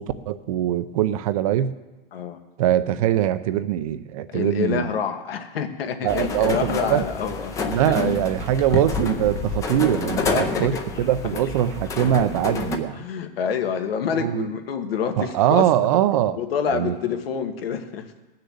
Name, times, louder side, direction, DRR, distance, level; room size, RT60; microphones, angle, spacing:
voice 1, 0.0-1.7 2.6-4.9 6.0-7.0 7.7-13.0 14.2-14.5 15.2-16.4 16.7-17.0, right 11 dB, 40° right, 12 dB, 0.5 m, -22 dB
voice 2, 4.3-7.6 7.9-8.2 10.2-10.8 11.2-11.4 12.9-16.0 16.4-18.1, left 7 dB, 80° left, 6 dB, 1.8 m, -27 dB
sound 1, 6.1-12.8, left 4 dB, 10° left, 0.6 m, -29 dB
18.5 x 6.6 x 7.8 m, 1.1 s
supercardioid pair, 165°, 29 cm